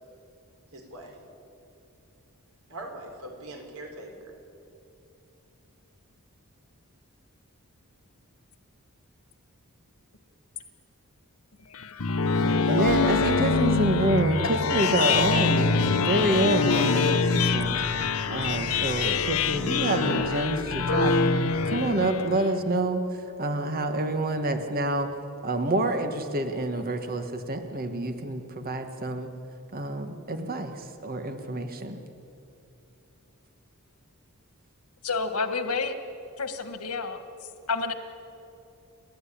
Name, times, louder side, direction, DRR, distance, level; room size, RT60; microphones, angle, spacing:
voice 1, 0.7-1.2 2.7-4.3, right 1 dB, 75° right, 3 dB, 4.2 m, -41 dB
sound 1, 11.7-22.6, left 4 dB, 70° left, 1.0 m, -24 dB
voice 2, 12.4-17.8 18.3-21.1 21.6-25.1 25.4-29.3 29.7-32.0, right 1 dB, 45° right, 6 dB, 1.5 m, -27 dB
voice 3, 35.0-35.9 36.4-37.2 37.7-37.9, left 4 dB, 90° left, 8 dB, 1.7 m, -29 dB
29.5 x 12.5 x 8.7 m, 2.8 s
head